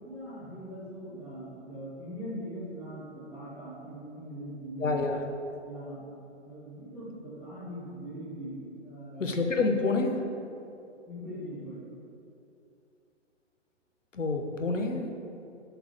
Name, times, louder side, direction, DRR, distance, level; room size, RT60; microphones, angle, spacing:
voice 1, 0.0-5.0 5.6-6.0 6.4-9.5 11.1-11.8, equal, ahead, -17 dB, 0.4 m, -41 dB
voice 2, 4.8-5.2 9.2-10.2 14.1-15.1, left 3 dB, 90° left, 4 dB, 1.2 m, -28 dB
7.8 x 4.8 x 6.6 m, 2.7 s
figure-of-eight pair, 135°, 37 cm